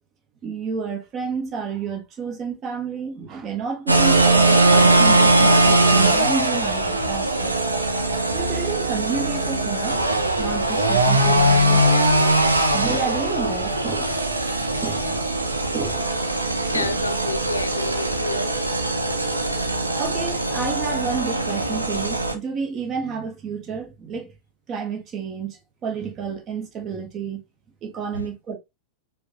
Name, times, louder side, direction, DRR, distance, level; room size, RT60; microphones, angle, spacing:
voice 1, 0.4-7.5 8.3-10.0 10.4-11.8 12.7-14.2 14.8-15.2 15.7-16.2 16.7-17.0 19.9-24.3 24.7-27.4 27.8-28.6, right 5 dB, 30° right, 1.2 m, -30 dB
sound 1, 3.9-22.3, right 2 dB, 80° right, 0.6 m, -20 dB
voice 2, 16.7-18.6 28.1-28.3, left 2 dB, 80° left, 0.5 m, -29 dB
5.0 x 2.4 x 3.0 m
figure-of-eight pair, 90°, 0 cm